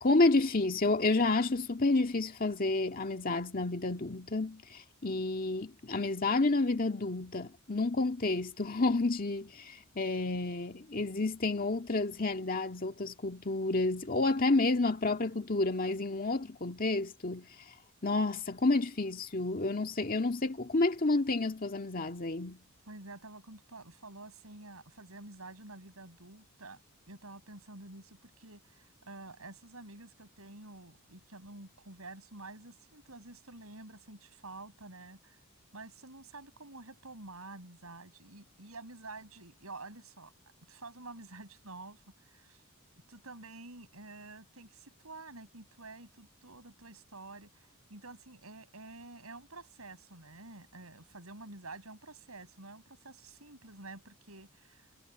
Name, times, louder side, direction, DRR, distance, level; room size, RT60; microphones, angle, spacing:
voice 1, 0.0-17.5 18.0-22.6, left 2 dB, 40° left, 1.8 m, -30 dB
voice 2, 22.9-26.8 27.1-35.4 35.7-40.3 40.7-42.6 43.1-54.9, right 2 dB, 75° right, 7.0 m, -49 dB
head